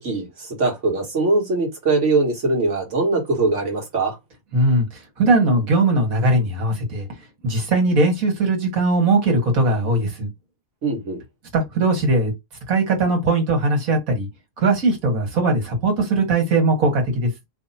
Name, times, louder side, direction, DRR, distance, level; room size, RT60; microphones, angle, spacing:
voice 1, 0.0-4.2 10.8-11.2, right 3 dB, 55° right, 1.8 m, -21 dB
voice 2, 4.5-4.9 5.2-7.1 7.4-10.3 11.5-12.3 12.7-14.3 14.6-17.3, right 2 dB, 75° right, 1.9 m, -19 dB
3.0 x 2.8 x 4.0 m
omnidirectional pair, 1.5 m